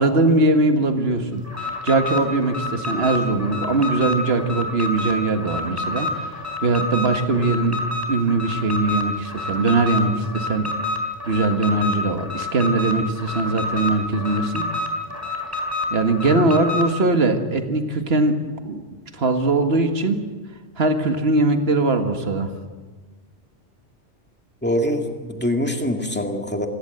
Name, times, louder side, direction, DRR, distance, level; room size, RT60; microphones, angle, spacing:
voice 1, 0.0-6.4 6.6-7.8 8.1-10.7 11.2-14.6 15.9-18.4 18.6-18.8 19.1-20.2 20.8-22.5, right 2 dB, 60° right, 6 dB, 2.0 m, -21 dB
Alarm, 1.5-16.9, left 2 dB, 15° right, 3.3 m, -28 dB
voice 2, 24.6-26.7, equal, 10° left, 3 dB, 2.2 m, -24 dB
27.5 x 16.5 x 8.1 m, 1.4 s
omnidirectional pair, 1.2 m